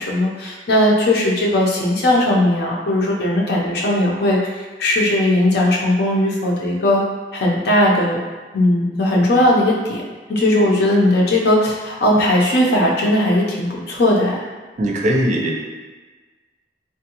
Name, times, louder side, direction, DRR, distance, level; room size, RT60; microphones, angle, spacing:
voice 1, 0.0-4.5 4.8-7.0 7.3-8.2 8.5-10.0 10.3-14.4, left 1 dB, 65° left, -3 dB, 0.6 m, -17 dB
voice 2, 14.8-15.7, right 1 dB, 45° right, 0 dB, 0.4 m, -20 dB
3.5 x 2.1 x 2.8 m, 1.3 s
head